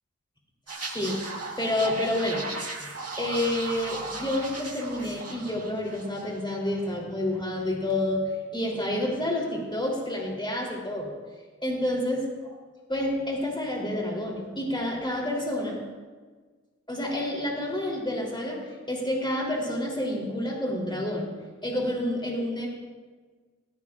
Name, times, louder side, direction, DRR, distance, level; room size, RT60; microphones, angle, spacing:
sound 1, 0.7-6.4 6.7-6.9, right 2 dB, 55° right, 1.7 m, -37 dB
voice 1, 1.6-2.5 3.2-11.1 11.6-12.3 12.9-15.8 16.9-18.6 18.9-21.3 21.6-22.7, left 1 dB, 15° left, -2 dB, 3.3 m, -29 dB
16.5 x 16.0 x 2.5 m, 1.4 s
wide cardioid pair, 45°, 30 cm